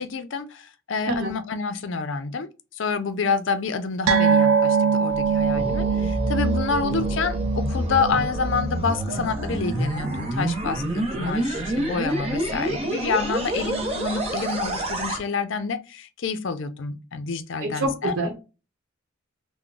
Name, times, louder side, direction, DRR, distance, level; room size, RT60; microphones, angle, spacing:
voice 1, 0.0-18.1, left 5 dB, 60° left, 0.5 m, -28 dB
mixing bowl ring, 4.1-10.9 11.2-11.4 11.7-11.8, right 6 dB, 90° right, 0.4 m, -24 dB
sound 1, 5.1-15.2, right 1 dB, 30° right, 0.7 m, -28 dB
voice 2, 17.6-18.4, right 2 dB, 70° right, 0.8 m, -26 dB
3.7 x 2.1 x 2.3 m
head